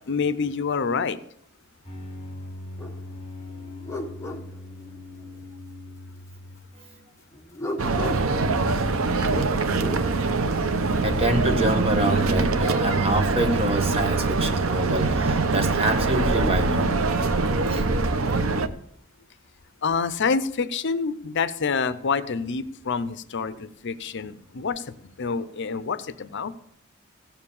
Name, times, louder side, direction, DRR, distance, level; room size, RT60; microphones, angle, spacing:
voice 1, 0.1-1.2 19.8-26.5, left 5 dB, 60° left, 0.6 m, -27 dB
sound 1, 1.8-7.1, left 2 dB, 30° left, 4.5 m, -40 dB
sound 2, 2.8-3.0 3.5-5.5 7.3-10.1 11.8-12.6, left 1 dB, 15° left, 1.4 m, -38 dB
sound 3, 7.8-18.7, right 3 dB, 85° right, 0.9 m, -23 dB
voice 2, 11.0-16.8 17.7-17.8, right 1 dB, 30° right, 1.6 m, -26 dB
16.0 x 7.3 x 7.0 m
head